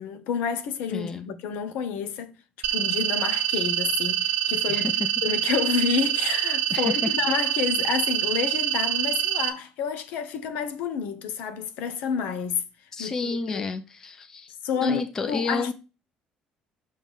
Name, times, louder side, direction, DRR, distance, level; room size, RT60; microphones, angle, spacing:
voice 1, 0.0-2.3 2.7-4.9 5.2-12.7 13.0-13.7 14.6-15.7, left 7 dB, 75° left, 1.1 m, -29 dB
voice 2, 0.9-1.3 3.5-3.7 4.7-5.1 6.7-7.1 12.9-14.5 14.8-15.7, left 4 dB, 20° left, 0.6 m, -30 dB
sound 1, 2.6-9.5, right 11 dB, 65° right, 0.9 m, -25 dB
6.5 x 3.7 x 6.3 m
cardioid pair, 175°, 3 cm